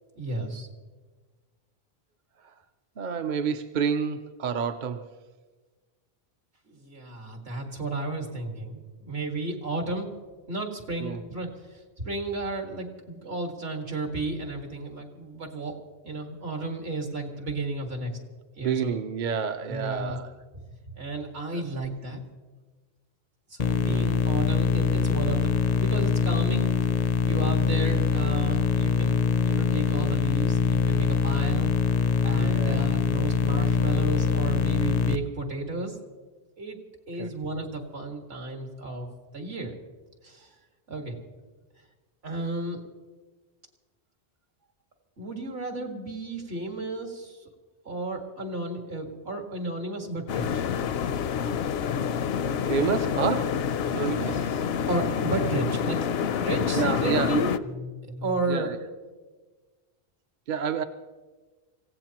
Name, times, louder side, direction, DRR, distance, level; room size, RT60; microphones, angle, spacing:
voice 1, 0.2-0.7 6.7-10.1 10.5-11.8 12.0-15.7 16.0-18.1 18.6-18.9 19.7-20.2 21.0-22.2 23.5-26.7 27.2-29.2 29.5-31.7 32.2-36.0 36.6-36.8 37.1-39.7 40.2-40.5 40.9-41.2 42.2-42.8 45.2-47.4 47.9-50.6 54.3-54.4 54.9-56.0 56.4-58.7, right 2 dB, 75° right, 2.2 m, -33 dB
voice 2, 3.0-5.1 11.0-11.2 18.6-20.3 21.5-21.6 23.9-24.2 32.4-32.9 37.2-37.3 52.7-54.6 56.7-57.4 58.5-58.8 60.5-60.8, right 6 dB, 55° right, 0.7 m, -29 dB
sound 1, 23.6-35.2, left 6 dB, 50° left, 0.5 m, -23 dB
sound 2, 50.3-57.6, left 7 dB, 75° left, 0.8 m, -27 dB
25.0 x 16.5 x 3.0 m
omnidirectional pair, 1.1 m